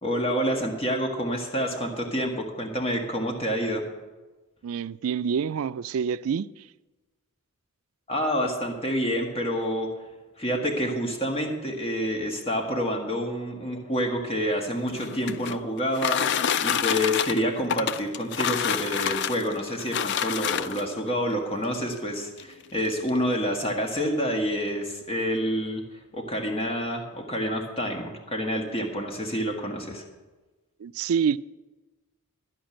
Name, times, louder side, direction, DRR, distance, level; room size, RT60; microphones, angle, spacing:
voice 1, 0.0-3.8 8.1-9.9 10.4-16.2 16.6-25.8 26.1-30.0, equal, 25° left, 1.7 m, -28 dB
voice 2, 4.6-6.5 30.8-31.4, right 7 dB, 70° right, 0.4 m, -27 dB
sound 1, 14.8-21.0 21.9-22.0 22.4-22.5 22.8-23.2, left 8 dB, 55° left, 0.4 m, -28 dB
13.5 x 5.1 x 8.8 m
head